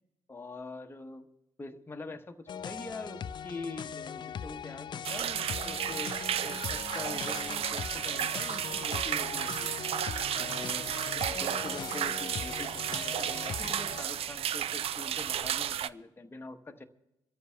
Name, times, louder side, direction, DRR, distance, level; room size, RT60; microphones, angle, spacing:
voice 1, 0.3-1.3 1.6-6.1 6.4-9.7 10.4-16.8, left 3 dB, 15° left, 6 dB, 1.0 m, -44 dB
sound 1, 2.5-14.0, left 8 dB, 35° left, 0.4 m, -40 dB
sound 2, 5.0-15.9, right 10 dB, 45° right, 0.4 m, -33 dB
26.5 x 13.5 x 2.3 m, 0.93 s
figure-of-eight pair, 45°, 14 cm